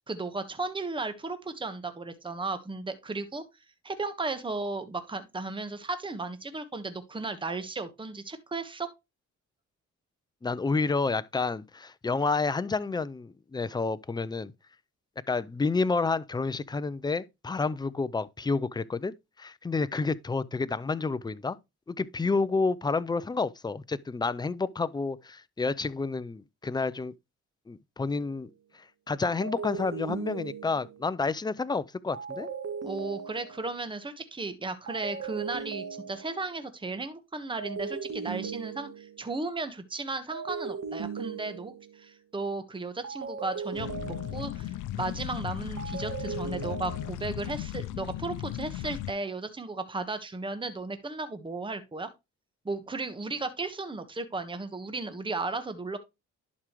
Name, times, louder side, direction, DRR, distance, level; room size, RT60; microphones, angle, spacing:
voice 1, 0.1-3.4 3.8-8.9 32.8-52.1 52.6-56.0, right 3 dB, 15° right, 1.3 m, -35 dB
voice 2, 10.4-14.5 15.3-21.6 21.9-27.1 27.7-28.5 28.7-32.5, left 4 dB, 15° left, 0.5 m, -30 dB
sound 1, 28.1-28.4 29.4-31.1 32.1-33.8 34.9-36.6 37.6-39.3 40.3-42.0 43.0-44.7 45.8-47.1, right 5 dB, 60° right, 2.1 m, -38 dB
sound 2, 43.7-49.1, left 13 dB, 85° left, 0.6 m, -36 dB
11.0 x 4.9 x 3.1 m
cardioid pair, 90°, 30 cm